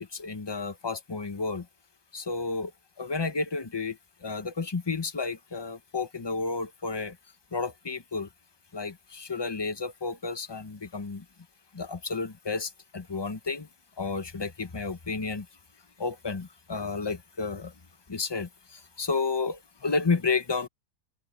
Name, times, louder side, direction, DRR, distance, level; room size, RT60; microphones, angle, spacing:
voice 1, 0.0-1.7 2.1-2.7 3.0-7.2 7.5-8.3 8.7-11.2 11.7-13.7 14.0-15.5 16.0-17.7 18.1-20.7, left 4 dB, 20° left, 0.7 m, -31 dB
omnidirectional pair, 1.7 m